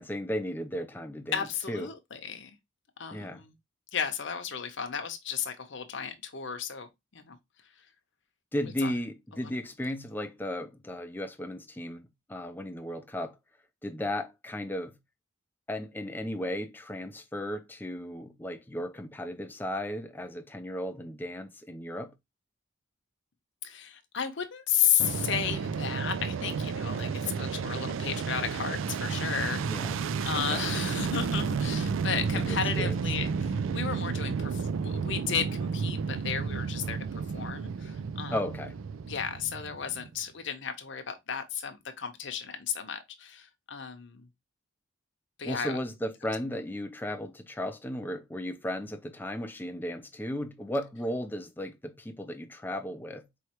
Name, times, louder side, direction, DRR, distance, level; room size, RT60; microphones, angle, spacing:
voice 1, 0.0-1.9 3.1-3.4 8.5-13.4 13.8-15.0 15.7-22.1 29.7-30.0 30.3-30.6 32.3-33.0 38.3-38.8 45.4-53.3, left 1 dB, 10° left, 0.4 m, -35 dB
voice 2, 1.3-2.5 3.0-3.5 3.9-7.4 8.8-8.9 9.3-9.5 23.6-29.7 30.2-38.4 39.0-44.3 45.4-45.8, left 8 dB, 60° left, 0.8 m, -33 dB
Fixed-wing aircraft airplane, 25.0-40.2, right 5 dB, 70° right, 0.4 m, -32 dB
4.6 x 3.2 x 2.9 m
head